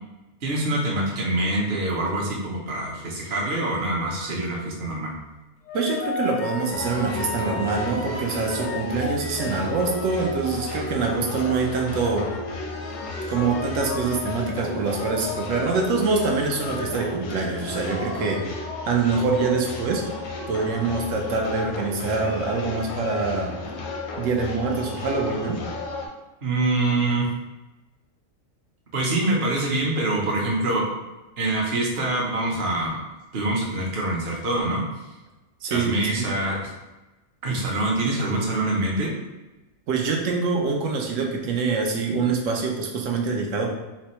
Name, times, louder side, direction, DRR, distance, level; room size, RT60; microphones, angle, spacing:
voice 1, 0.4-5.1 26.4-27.3 28.9-30.9 31.4-33.0 33.3-34.8 35.7-36.7 37.4-39.1, right 2 dB, 50° right, -2 dB, 0.8 m, -25 dB
sound 1, 3.5-4.7 5.7-11.8 12.2-14.2, left 5 dB, 60° left, 0.5 m, -36 dB
voice 2, 5.7-12.3 13.3-20.0 20.5-23.5 24.2-25.6 35.6-36.3 39.9-43.7, right 4 dB, 85° right, 2 dB, 1.0 m, -25 dB
sound 2, 6.7-26.1, left 3 dB, 85° left, 1.0 m, -33 dB
4.0 x 2.2 x 2.9 m, 1.1 s
omnidirectional pair, 1.3 m